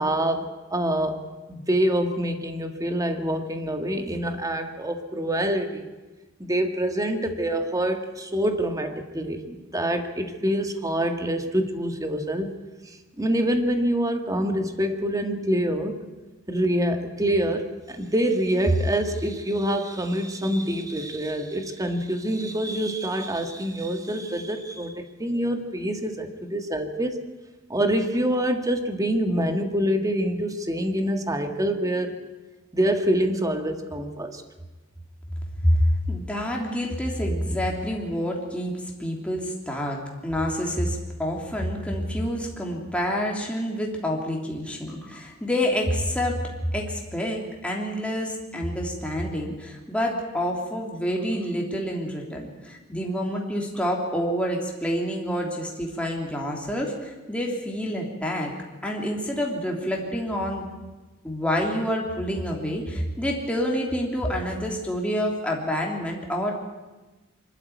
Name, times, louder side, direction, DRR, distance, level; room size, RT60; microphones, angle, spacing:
voice 1, 0.0-5.9 6.4-12.5 13.2-16.0 16.5-27.2 27.7-32.2 32.7-34.4, right 1 dB, 20° right, 6 dB, 1.6 m, -26 dB
voice 2, 35.6-46.4 46.7-58.5 58.8-60.7 61.2-66.5, equal, 5° left, -1 dB, 3.2 m, -27 dB
24.0 x 12.5 x 9.4 m, 1.2 s
head